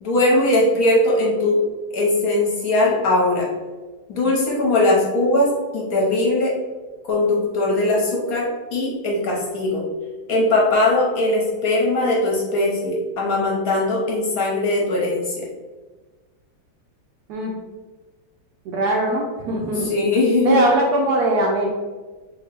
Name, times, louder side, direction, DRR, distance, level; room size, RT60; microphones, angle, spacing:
voice 1, 0.0-1.6 1.9-3.5 4.1-6.5 7.1-9.8 10.3-15.4 19.8-20.6, left 2 dB, 60° left, -3 dB, 1.0 m, -20 dB
voice 2, 18.7-19.9 20.4-21.7, right 1 dB, 80° right, -2 dB, 0.8 m, -20 dB
3.5 x 2.8 x 3.2 m, 1.3 s
omnidirectional pair, 2.2 m